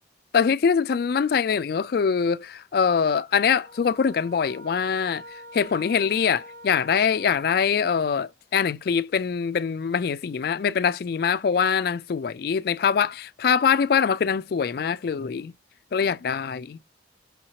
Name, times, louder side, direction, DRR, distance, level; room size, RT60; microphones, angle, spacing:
voice 1, 0.3-15.5 15.9-16.8, left 6 dB, 55° left, 0.3 m, -23 dB
sound 1, 3.6-8.0, equal, 85° right, 1.8 m, -45 dB
5.6 x 2.8 x 2.9 m
head